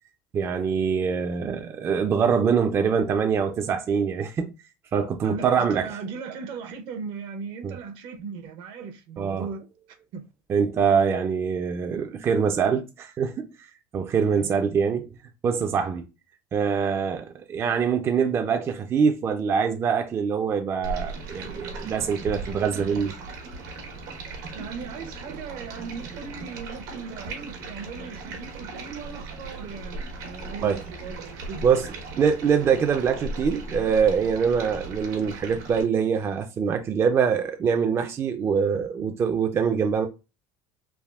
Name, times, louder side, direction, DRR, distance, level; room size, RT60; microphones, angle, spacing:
voice 1, 0.3-4.5 4.9-5.9 7.6-7.7 9.2-9.5 10.5-15.1 15.4-16.1 16.5-23.1 30.6-30.8 31.6-31.9 32.2-40.1, right 6 dB, 30° right, 0.3 m, -24 dB
voice 2, 5.2-9.7 10.1-10.3 14.3-14.5 24.5-30.0 30.2-31.9, right 5 dB, 65° right, 0.6 m, -37 dB
Stream, 20.8-35.8, right 3 dB, 90° right, 1.0 m, -37 dB
3.4 x 2.3 x 2.3 m
supercardioid pair, 115°, 9 cm